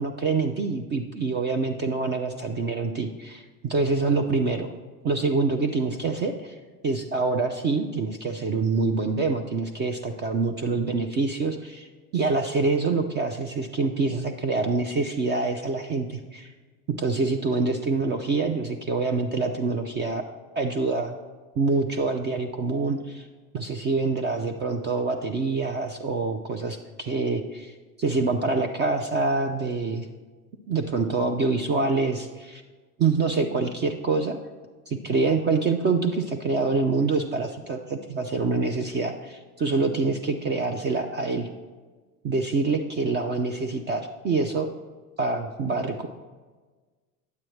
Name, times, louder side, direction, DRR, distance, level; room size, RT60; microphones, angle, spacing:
voice 1, 0.0-4.7 5.0-6.5 6.8-11.9 12.1-16.5 16.9-20.2 20.6-21.1 21.6-23.3 23.5-30.1 30.7-32.6 33.0-34.4 34.9-41.5 42.2-44.7 45.2-46.1, right 3 dB, 25° right, 5 dB, 0.4 m, -26 dB
9.4 x 7.5 x 3.1 m, 1.3 s
hypercardioid pair, 85°, 49 cm